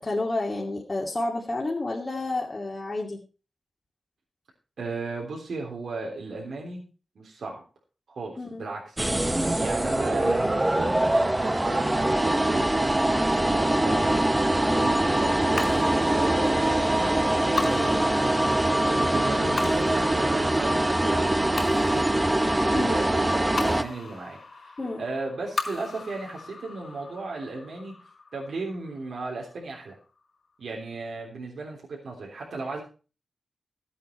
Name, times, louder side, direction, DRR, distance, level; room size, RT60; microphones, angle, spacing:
voice 1, 0.0-3.2 8.4-8.6 14.6-14.9 22.7-23.0 24.8-25.0, left 2 dB, 35° left, -3 dB, 2.5 m, -30 dB
voice 2, 4.8-6.8 7.2-7.6 8.1-9.0 9.5-12.9 13.3-14.2 14.8-18.0 18.8-22.3 22.6-27.9 28.3-30.0 30.6-32.8, right 3 dB, 80° right, -2 dB, 3.4 m, -35 dB
sound 1, 9.0-23.8, right 1 dB, 15° right, 0.9 m, -23 dB
sound 2, 15.6-30.1, left 4 dB, 55° left, 4.4 m, -39 dB
13.5 x 8.4 x 4.6 m, 0.34 s
wide cardioid pair, 80°, 0 cm